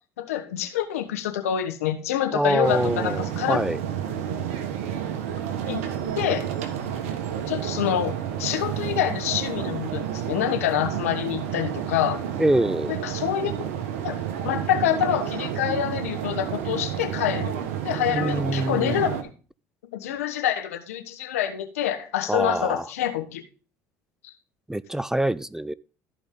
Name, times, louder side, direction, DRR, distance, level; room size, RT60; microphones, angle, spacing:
voice 1, 0.2-3.6 5.7-5.8 6.2-6.5 7.5-12.2 12.9-13.5 13.9-14.2 14.4-19.1 19.9-23.4 24.2-24.3, left 11 dB, 90° left, 1.3 m, -26 dB
voice 2, 2.3-3.8 12.4-13.0 18.1-19.0 22.3-22.8 24.7-25.7, right 1 dB, 5° right, 0.4 m, -25 dB
sound 1, 2.6-19.2, right 9 dB, 85° right, 1.4 m, -30 dB
13.5 x 5.2 x 3.8 m
hypercardioid pair, 75°, 8 cm